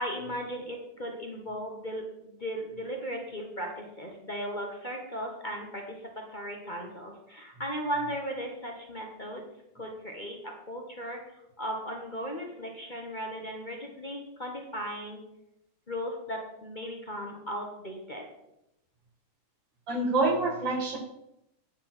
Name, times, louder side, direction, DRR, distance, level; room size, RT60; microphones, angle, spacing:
voice 1, 0.0-9.5 9.7-15.2 15.9-18.2, equal, 30° left, 0 dB, 1.2 m, -37 dB
voice 2, 19.9-21.0, right 3 dB, 75° right, -1 dB, 2.8 m, -26 dB
9.6 x 6.1 x 6.1 m, 0.87 s
omnidirectional pair, 2.1 m